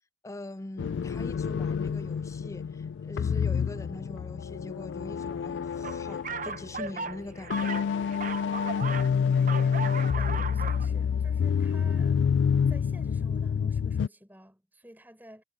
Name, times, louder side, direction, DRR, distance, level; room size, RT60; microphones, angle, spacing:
voice 1, 0.2-7.8, left 1 dB, 15° left, 0.4 m, -42 dB
sound 1, 0.8-14.1, left 7 dB, 85° left, 0.3 m, -28 dB
sound 2, 5.8-9.1 9.4-10.9, right 4 dB, 45° right, 0.9 m, -36 dB
voice 2, 8.8-9.8 10.2-12.2 12.7-15.4, equal, 10° right, 5.4 m, -50 dB
head